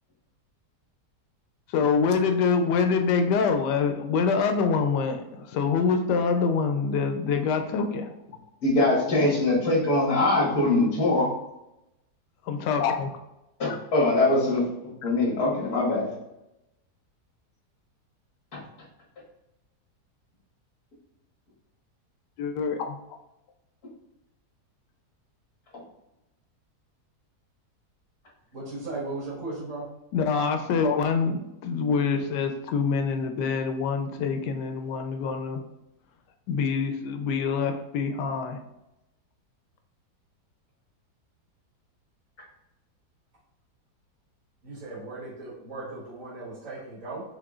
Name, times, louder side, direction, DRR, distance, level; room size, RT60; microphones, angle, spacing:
voice 1, 1.7-8.2 12.5-13.1 13.7-13.8 22.4-23.0 30.1-35.6 36.5-38.6, left 5 dB, 85° left, 6 dB, 1.2 m, -25 dB
voice 2, 8.6-11.3 13.6-14.7 15.0-16.1 18.5-18.6, left 2 dB, 65° left, -4 dB, 2.0 m, -22 dB
voice 3, 28.5-29.9 44.6-47.2, right 2 dB, 55° right, -8 dB, 1.9 m, -37 dB
5.7 x 3.2 x 2.4 m, 0.90 s
omnidirectional pair, 1.8 m